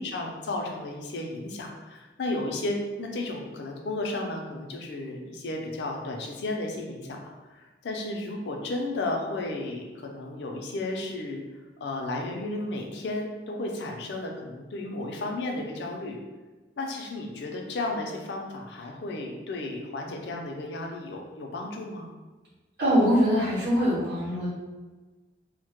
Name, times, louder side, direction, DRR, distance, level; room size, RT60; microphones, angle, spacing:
voice 1, 0.0-11.4 11.8-16.2 16.8-22.1, left 2 dB, 70° left, 1 dB, 0.4 m, -33 dB
voice 2, 22.8-24.5, equal, 60° right, -9 dB, 0.8 m, -23 dB
2.1 x 2.0 x 2.9 m, 1.3 s
head